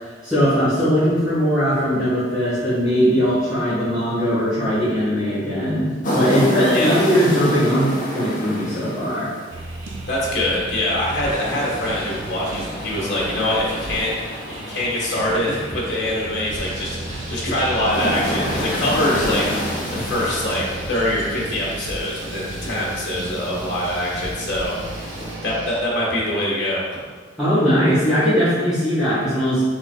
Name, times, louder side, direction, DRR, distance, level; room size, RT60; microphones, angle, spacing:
voice 1, 0.2-9.3 27.4-29.6, equal, 5° right, -14 dB, 1.4 m, -19 dB
sound 1, 6.0-25.4, equal, 45° left, 1.2 m, -30 dB
sound 2, 9.5-25.8, right 2 dB, 80° right, 0.6 m, -34 dB
voice 2, 10.1-14.1 14.5-26.8, left 1 dB, 70° left, -6 dB, 1.4 m, -24 dB
5.9 x 3.9 x 2.3 m, 1.5 s
head